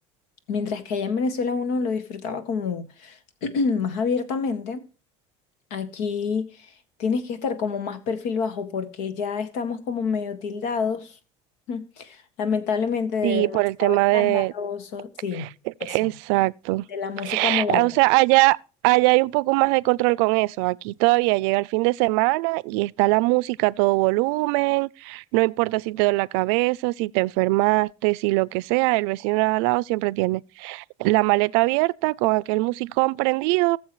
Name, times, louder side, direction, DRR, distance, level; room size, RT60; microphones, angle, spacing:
voice 1, 0.5-4.8 5.7-6.7 7.0-11.2 11.7-15.5 15.8-16.1 16.9-17.9, left 5 dB, 85° left, 1.9 m, -28 dB
voice 2, 13.2-14.5 15.4-15.5 15.9-16.9 17.2-18.6 18.8-33.8, right 23 dB, 85° right, 0.4 m, -21 dB
18.5 x 7.2 x 3.1 m
cardioid pair, 140°, 14 cm